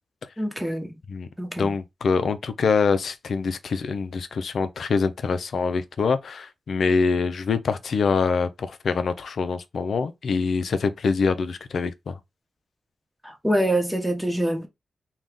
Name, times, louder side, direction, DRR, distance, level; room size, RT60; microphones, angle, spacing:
voice 1, 0.4-1.0 1.4-1.7 13.2-14.7, right 1 dB, 10° right, 1.0 m, -25 dB
voice 2, 1.6-12.2, left 5 dB, 75° left, 0.4 m, -25 dB
2.5 x 2.3 x 3.4 m
supercardioid pair, 45°, 0 cm